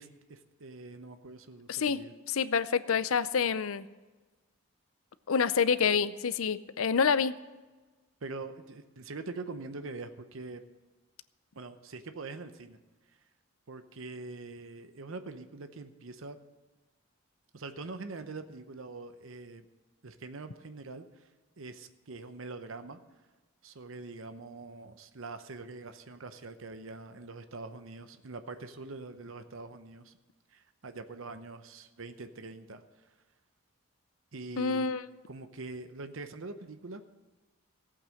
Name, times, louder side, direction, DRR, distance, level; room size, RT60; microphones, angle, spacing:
voice 1, 0.0-2.1 8.2-10.6 11.5-12.8 13.7-16.4 17.5-19.6 20.0-21.3 21.6-23.0 23.6-30.2 30.5-32.8 34.3-34.9 35.3-37.0, right 3 dB, 70° right, 9 dB, 0.8 m, -44 dB
voice 2, 1.7-2.0 2.3-3.9 5.3-7.4 34.6-35.1, left 6 dB, 75° left, 14 dB, 0.6 m, -27 dB
15.0 x 8.7 x 6.4 m, 1.2 s
head